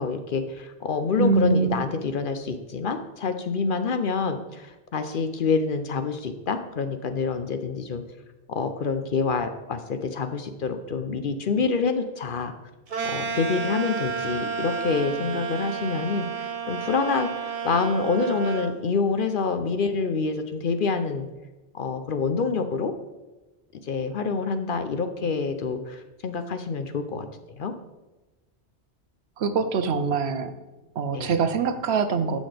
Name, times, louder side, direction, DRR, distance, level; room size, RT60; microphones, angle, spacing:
voice 1, 0.0-8.0 8.5-12.5 13.1-21.3 21.7-22.9 23.8-27.3 27.6-27.7 31.1-31.4, left 4 dB, 55° left, 8 dB, 0.7 m, -27 dB
voice 2, 1.2-1.8 29.4-30.5 31.0-32.4, right 5 dB, 70° right, 10 dB, 0.9 m, -23 dB
sound 1, 12.9-18.7, right 6 dB, 40° right, 0.7 m, -31 dB
11.0 x 6.4 x 3.4 m, 1.1 s
omnidirectional pair, 1.1 m